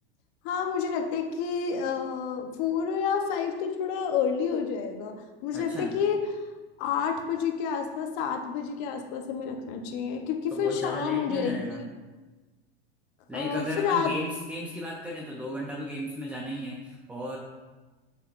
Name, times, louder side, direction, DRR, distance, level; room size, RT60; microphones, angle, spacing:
voice 1, 0.4-5.1 5.4-6.2 6.8-11.8 13.3-14.1, left 7 dB, 50° left, 4 dB, 1.0 m, -29 dB
voice 2, 5.5-6.0 10.5-11.9 13.3-17.4, equal, 5° right, -2 dB, 0.6 m, -35 dB
8.1 x 5.8 x 2.6 m, 1.2 s
supercardioid pair, 130°, 32 cm